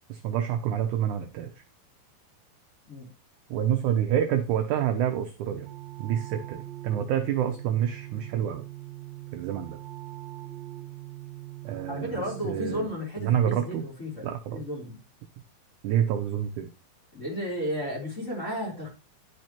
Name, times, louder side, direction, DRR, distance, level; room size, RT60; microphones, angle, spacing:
voice 1, 0.1-1.5 3.5-5.7 6.0-8.6 9.3-9.8 11.6-12.9 13.2-13.9 14.2-14.7 15.8-16.7, right 10 dB, 75° right, 5 dB, 1.8 m, -28 dB
sound 1, 5.5-12.9, right 16 dB, 25° right, 1.0 m, -42 dB
voice 2, 11.9-15.0 17.1-18.9, equal, 20° left, -4 dB, 3.5 m, -33 dB
11.0 x 6.3 x 2.9 m, 0.33 s
omnidirectional pair, 4.2 m